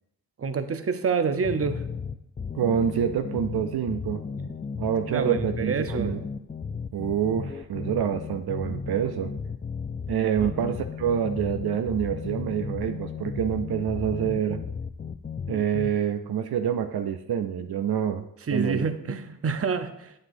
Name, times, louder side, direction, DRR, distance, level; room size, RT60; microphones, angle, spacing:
voice 1, 0.4-1.8 5.1-6.1 10.4-10.5 18.4-20.1, right 5 dB, 40° right, 10 dB, 0.7 m, -27 dB
sound 1, 1.4-15.9, left 5 dB, 25° left, 0.4 m, -34 dB
voice 2, 2.5-4.2 4.8-6.2 6.9-9.3 10.1-14.6 15.5-18.2 18.5-18.8, right 8 dB, 80° right, 8 dB, 0.5 m, -27 dB
8.7 x 7.6 x 2.6 m, 0.82 s
cardioid pair, 50°, 38 cm